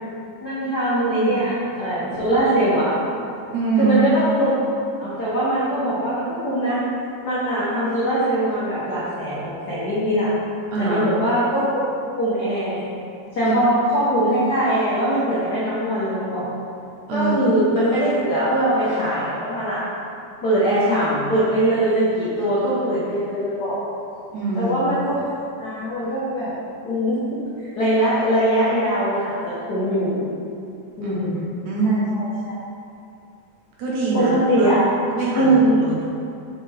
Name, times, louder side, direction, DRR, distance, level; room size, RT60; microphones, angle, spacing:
voice 1, 0.4-2.9 3.8-4.5 5.0-6.8 7.2-10.3 10.8-11.8 12.2-12.8 13.3-16.5 17.1-19.8 20.4-23.8 24.5-26.5 26.8-27.2 27.6-30.2 31.0-31.4 31.8-32.6 34.1-34.8 35.3-35.8, right 1 dB, 80° left, -10 dB, 0.9 m, -21 dB
voice 2, 3.5-4.0 10.7-11.1 13.4-13.6 17.1-17.3 24.3-24.8 31.0-31.4 31.6-32.0 33.8-34.3 34.6-34.7 35.1-36.1, right 4 dB, 75° right, -5 dB, 2.2 m, -23 dB
5.9 x 5.8 x 3.3 m, 2.5 s
omnidirectional pair, 3.6 m